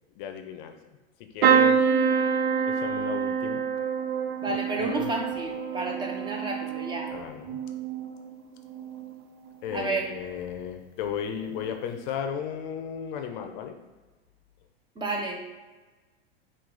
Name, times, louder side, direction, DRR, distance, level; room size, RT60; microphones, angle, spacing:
voice 1, 0.2-0.8 1.2-1.8 2.7-3.6 4.5-5.1 7.1-7.6 9.6-13.8, left 8 dB, 50° left, 5 dB, 0.5 m, -35 dB
sound 1, 1.4-9.3 9.7-10.2 11.5-11.7 11.9-12.0, right 6 dB, 85° right, 0.5 m, -27 dB
voice 2, 4.4-7.1 9.7-10.0 15.0-15.4, right 2 dB, 15° right, 1 dB, 0.5 m, -31 dB
4.6 x 2.4 x 3.7 m, 1.2 s
hypercardioid pair, 120°, 31 cm